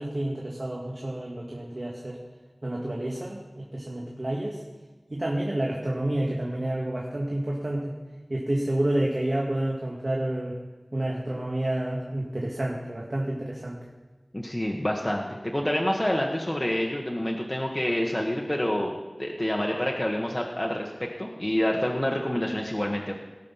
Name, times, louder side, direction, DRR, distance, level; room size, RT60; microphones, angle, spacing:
voice 1, 0.0-2.2 2.6-4.6 5.1-7.9 8.3-10.5 10.9-13.8, right 1 dB, 50° right, -4 dB, 2.2 m, -29 dB
voice 2, 14.3-18.9 19.2-23.1, left 1 dB, 25° left, -1 dB, 1.4 m, -27 dB
19.0 x 6.5 x 5.8 m, 1.3 s
wide cardioid pair, 55°, 0 cm